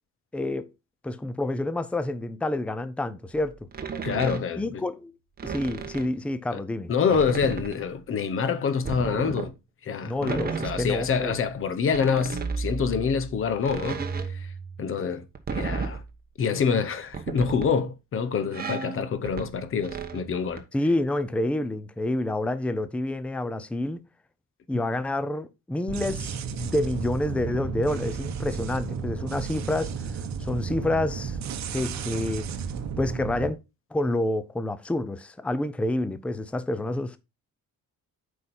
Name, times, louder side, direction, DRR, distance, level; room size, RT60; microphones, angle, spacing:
voice 1, 0.3-0.7 1.0-3.7 4.6-5.1 5.4-6.9 10.0-11.4 20.7-24.0 24.7-30.1 30.4-31.4 31.7-32.5 33.0-33.6 33.9-37.2, left 1 dB, 5° left, 0.5 m, -28 dB
sound 1, 3.7-4.9 5.4-6.2 7.1-7.9 8.8-9.5 10.2-11.5 11.9-16.1 17.0-17.8 18.5-20.6, right 5 dB, 30° right, 1.1 m, -34 dB
voice 2, 4.0-4.8 6.5-6.6 6.9-9.5 9.8-14.5 14.8-15.3 15.5-16.0 16.4-20.6, left 6 dB, 40° left, 0.9 m, -26 dB
sound 2, 25.9-33.5, right 6 dB, 55° right, 1.0 m, -33 dB
8.1 x 5.0 x 4.3 m
cardioid pair, 155°, 33 cm